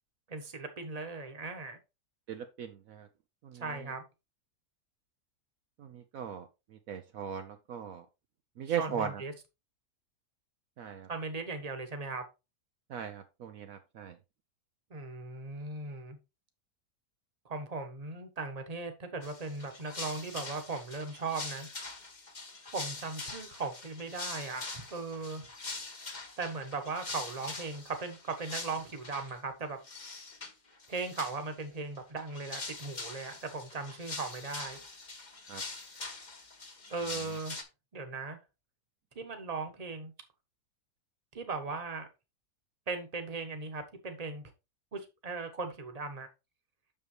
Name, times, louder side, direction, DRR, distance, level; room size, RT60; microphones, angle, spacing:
voice 1, 0.3-1.8 3.5-4.0 8.6-9.3 11.1-12.2 14.9-16.2 17.4-21.7 22.7-25.5 26.4-29.8 30.9-34.8 36.9-37.6 37.9-38.4 39.1-40.1 41.3-42.1 42.9-44.4 44.9-46.3, right 3 dB, 25° right, 1.3 m, -38 dB
voice 2, 2.3-3.1 3.4-3.6 5.8-6.5 6.9-8.0 8.6-9.1 10.8-11.1 12.9-14.2 35.5-35.6, right 8 dB, 65° right, 1.1 m, -38 dB
sound 1, 19.2-29.4 29.8-30.5 30.8-31.6 32.0-37.6, left 3 dB, 30° left, 1.3 m, -43 dB
6.9 x 6.7 x 3.2 m
omnidirectional pair, 1.6 m